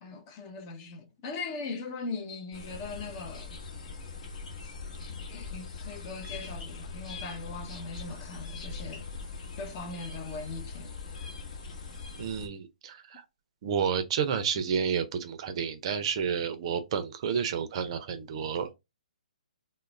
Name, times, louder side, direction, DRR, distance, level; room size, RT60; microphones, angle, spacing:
voice 1, 0.0-3.5 4.6-4.7 5.3-9.1 9.6-10.9 11.2-11.3, left 3 dB, 30° left, 0.6 m, -40 dB
sound 1, 2.5-12.5, left 4 dB, 55° left, 0.9 m, -41 dB
voice 2, 12.2-13.2 13.6-18.7, right 7 dB, 45° right, 0.4 m, -30 dB
2.3 x 2.1 x 3.1 m
hypercardioid pair, 140°, 4 cm